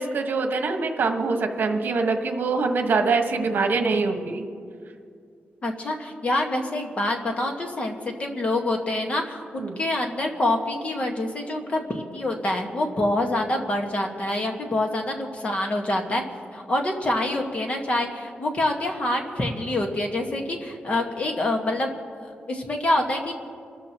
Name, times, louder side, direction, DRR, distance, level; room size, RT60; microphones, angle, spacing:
voice 1, 0.0-4.4 9.6-9.8, right 4 dB, 60° right, 4 dB, 1.4 m, -24 dB
voice 2, 5.6-16.2 16.5-21.9 22.2-23.3, left 1 dB, 35° left, 2 dB, 1.6 m, -26 dB
28.5 x 13.5 x 3.0 m, 2.3 s
wide cardioid pair, 170°, 4 cm